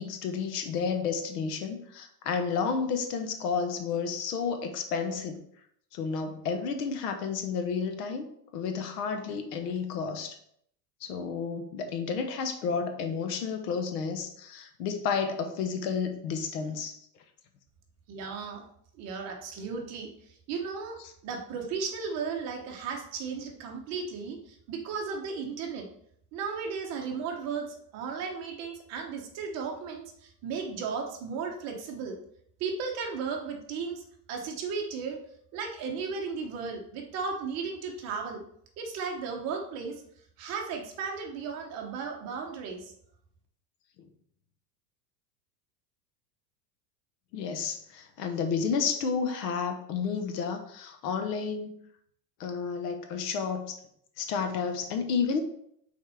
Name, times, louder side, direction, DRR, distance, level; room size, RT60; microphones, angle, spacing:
voice 1, 0.0-5.4 5.9-10.4 11.0-17.0 21.0-21.1 47.3-51.8 52.4-53.8 54.2-55.4, left 5 dB, 80° left, 6 dB, 1.3 m, -31 dB
voice 2, 18.1-18.6 19.0-20.1 20.5-21.0 21.2-25.9 26.3-32.2 32.6-35.2 35.5-38.4 38.8-40.0 40.4-42.9, right 5 dB, 35° right, 2 dB, 1.1 m, -35 dB
5.7 x 4.3 x 4.9 m, 0.68 s
supercardioid pair, 170°, 47 cm